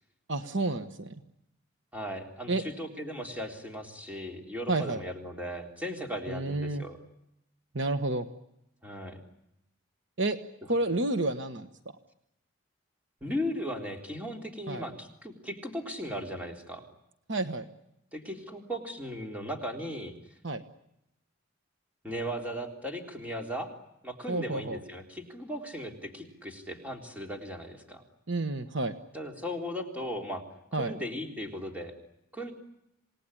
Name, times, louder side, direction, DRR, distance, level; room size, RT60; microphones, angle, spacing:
voice 1, 0.3-1.1 2.5-2.6 4.7-5.0 6.3-6.8 7.7-8.3 10.2-10.4 10.7-11.7 14.7-14.9 17.3-17.7 20.4-20.6 24.3-24.8 28.3-28.9 30.7-30.9, right 2 dB, 60° right, 9 dB, 1.3 m, -30 dB
voice 2, 1.9-7.0 8.8-9.2 13.2-16.8 18.1-20.1 22.0-23.7 24.0-28.0 29.1-30.4 30.7-31.9 32.3-32.5, equal, 5° right, 2 dB, 3.7 m, -37 dB
28.0 x 19.0 x 9.9 m, 0.84 s
head